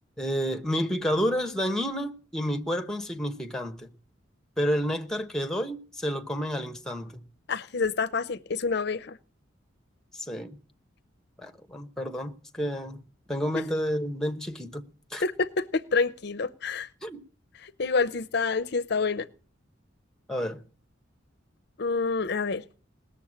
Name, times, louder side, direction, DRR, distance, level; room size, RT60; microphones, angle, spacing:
voice 1, 0.2-3.9 4.6-7.2 10.1-10.6 11.4-13.0 13.3-14.8 15.1-15.2 17.0-17.2 20.3-20.6, equal, 5° left, 1.1 m, -30 dB
voice 2, 7.5-9.2 15.2-16.9 17.6-19.3 21.8-22.6, left 4 dB, 55° left, 0.6 m, -27 dB
19.0 x 7.1 x 8.7 m
head